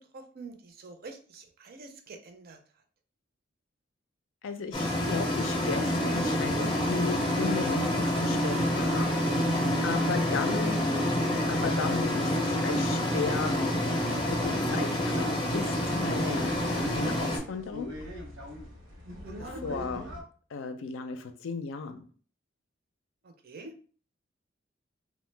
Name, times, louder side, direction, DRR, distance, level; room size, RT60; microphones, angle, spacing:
voice 1, 0.0-2.6 19.2-19.6 23.2-23.7, right 3 dB, 50° right, 6 dB, 0.5 m, -46 dB
voice 2, 4.4-9.1 9.8-10.8 11.5-13.5 14.2-17.9 19.4-20.1 20.5-22.0, left 5 dB, 85° left, 8 dB, 0.4 m, -35 dB
sound 1, 4.7-17.4, equal, 25° left, 0.5 m, -27 dB
sound 2, 13.2-20.2, equal, 80° right, 0.8 m, -44 dB
2.9 x 2.1 x 3.2 m, 0.42 s
head